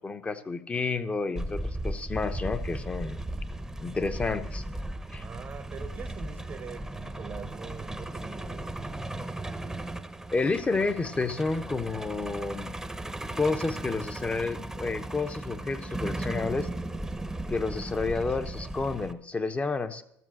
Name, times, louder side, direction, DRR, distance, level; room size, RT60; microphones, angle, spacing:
voice 1, 0.0-3.2 3.8-4.6 5.1-5.3 10.3-12.7 13.4-16.7 17.5-20.0, left 3 dB, 25° left, 0.9 m, -30 dB
Truck, 1.4-19.1, right 1 dB, 10° right, 0.9 m, -36 dB
voice 2, 5.1-9.3, right 6 dB, 40° right, 0.9 m, -43 dB
14.0 x 7.3 x 6.4 m
supercardioid pair, 75°, 5 cm